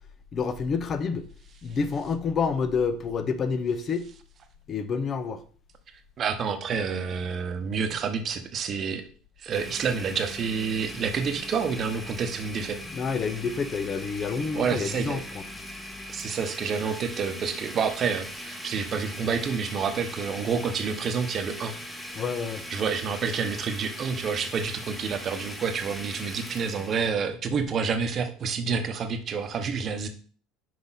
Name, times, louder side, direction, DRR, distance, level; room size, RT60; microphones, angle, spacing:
voice 1, 0.3-1.3 1.6-4.1 4.7-5.4 12.9-15.4 22.1-22.6, left 5 dB, 35° left, 0.7 m, -28 dB
voice 2, 6.2-9.0 9.4-12.8 14.5-15.2 16.1-21.7 22.7-30.1, right 6 dB, 40° right, 0.9 m, -28 dB
Domestic sounds home sounds, 9.5-27.1, left 1 dB, 5° left, 1.1 m, -40 dB
6.0 x 5.1 x 4.0 m
supercardioid pair, 105°, 0 cm